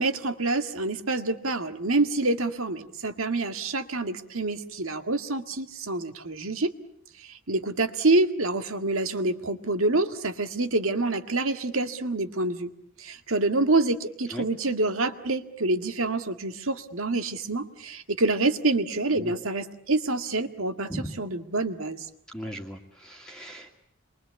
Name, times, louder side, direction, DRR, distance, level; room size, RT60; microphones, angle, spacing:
voice 1, 0.0-6.7 7.2-12.7 13.0-22.1, right 2 dB, 75° right, 8 dB, 1.9 m, -27 dB
voice 2, 22.3-23.7, equal, 5° left, 0 dB, 2.1 m, -37 dB
27.5 x 23.0 x 8.3 m, 0.70 s
head